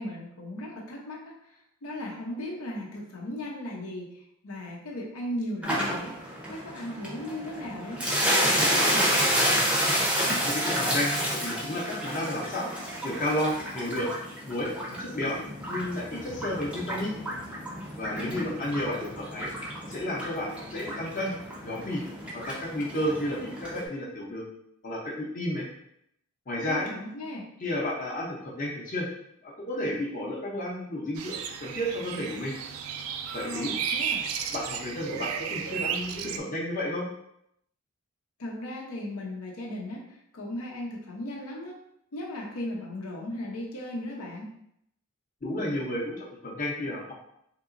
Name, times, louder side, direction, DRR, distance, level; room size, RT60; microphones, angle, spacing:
voice 1, 0.0-1.4 1.8-4.1 4.4-6.2 6.5-9.3 18.0-18.5 26.6-27.5 33.4-34.3 38.4-41.8 42.1-44.5, left 1 dB, 80° left, -2 dB, 0.7 m, -37 dB
sound 1, 5.6-23.8, equal, 5° right, 0.6 m, -30 dB
voice 2, 10.3-11.1 11.4-12.7 13.0-14.1 14.5-14.7 15.0-15.4 15.7-17.2 18.0-19.5 19.9-21.3 21.6-22.0 22.3-24.5 24.8-25.7 26.5-26.9 27.6-29.1 29.4-32.5 33.3-33.7 34.5-37.1 45.4-47.1, left 1 dB, 35° left, -3 dB, 0.7 m, -32 dB
sound 2, 31.2-36.4, right 7 dB, 70° right, 0.3 m, -33 dB
3.6 x 2.8 x 2.5 m, 0.74 s
head